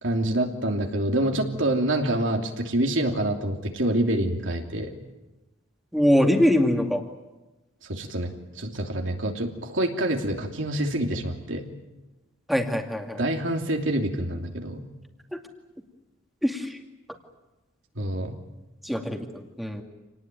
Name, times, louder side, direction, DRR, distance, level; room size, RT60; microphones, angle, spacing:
voice 1, 0.0-4.9 7.8-11.7 13.2-14.8 17.9-18.4, right 1 dB, 65° right, 2 dB, 3.0 m, -26 dB
voice 2, 5.9-7.0 12.5-13.2 15.3-15.4 16.4-16.8 18.8-19.8, equal, ahead, 3 dB, 2.4 m, -23 dB
27.5 x 19.0 x 9.3 m, 1.1 s
head